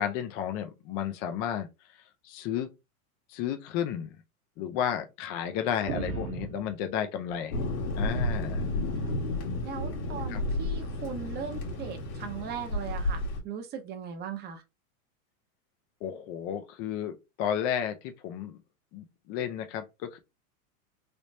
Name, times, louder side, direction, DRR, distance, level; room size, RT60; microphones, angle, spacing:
voice 1, 0.0-1.7 2.2-2.7 3.3-4.1 4.6-7.6 8.0-8.6 10.3-10.4 16.0-18.6 18.9-20.2, left 9 dB, 25° left, 0.3 m, -32 dB
sound 1, 5.9-8.1 8.5-9.4 10.3-10.6 11.6-11.8, right 5 dB, 45° right, 1.1 m, -40 dB
Thunder, 7.5-13.4, left 1 dB, 75° left, 1.5 m, -32 dB
voice 2, 8.4-9.2 9.6-14.6, right 7 dB, 25° right, 0.6 m, -39 dB
3.3 x 3.0 x 2.6 m
supercardioid pair, 135°, 43 cm